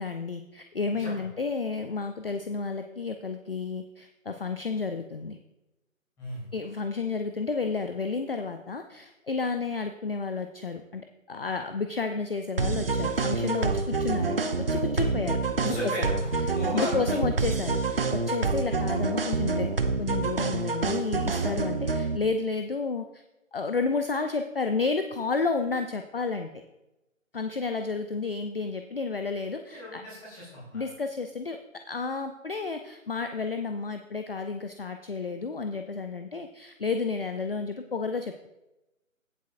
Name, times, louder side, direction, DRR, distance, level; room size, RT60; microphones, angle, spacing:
voice 1, 0.0-5.4 6.5-15.9 16.7-19.7 20.0-23.2 23.5-26.5 27.3-30.0 30.7-31.6 31.9-38.5, left 4 dB, 45° left, 7 dB, 0.6 m, -31 dB
sound 1, 12.6-22.2, right 4 dB, 45° right, 0.7 m, -27 dB
voice 2, 15.5-17.2 29.7-30.8, equal, 10° left, -7 dB, 3.1 m, -36 dB
16.5 x 7.6 x 2.5 m, 0.95 s
figure-of-eight pair, 150°, 40 cm